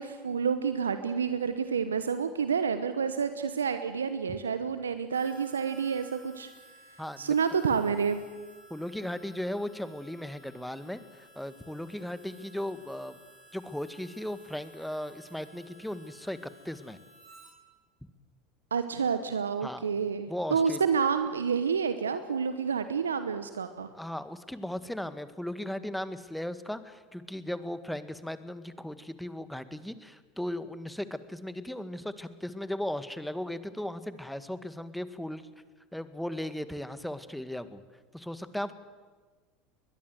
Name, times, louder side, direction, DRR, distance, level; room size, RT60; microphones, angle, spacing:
voice 1, 0.0-6.5 7.2-8.2 18.7-23.9, right 6 dB, 85° right, 11 dB, 1.0 m, -29 dB
Harmonica, 5.1-17.5, equal, 40° right, 5.4 m, -56 dB
voice 2, 7.0-7.4 8.7-13.2 13.5-16.4 16.6-17.0 19.6-19.9 20.3-20.8 23.9-35.5 35.9-37.8 38.1-38.7, left 1 dB, 5° left, 12 dB, 1.7 m, -37 dB
22.0 x 21.0 x 8.0 m, 1.4 s
hypercardioid pair, 75°, 0 cm